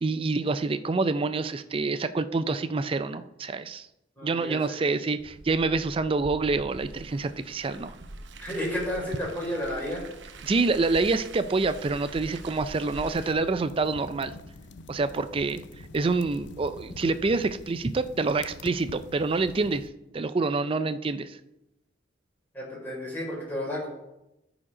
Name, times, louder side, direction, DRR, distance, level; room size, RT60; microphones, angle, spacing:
voice 1, 0.0-3.9 4.2-8.0 10.4-14.3 14.9-15.6 15.9-19.9 20.1-21.4, right 3 dB, 30° right, 12 dB, 0.4 m, -27 dB
voice 2, 4.2-4.8 8.4-10.1 22.5-23.9, left 1 dB, 10° left, -4 dB, 4.1 m, -32 dB
Car, 5.2-13.3, right 2 dB, 70° right, 0.8 m, -44 dB
sound 1, 13.2-19.9, left 2 dB, 65° left, 0.6 m, -45 dB
13.5 x 5.0 x 4.9 m, 0.90 s
head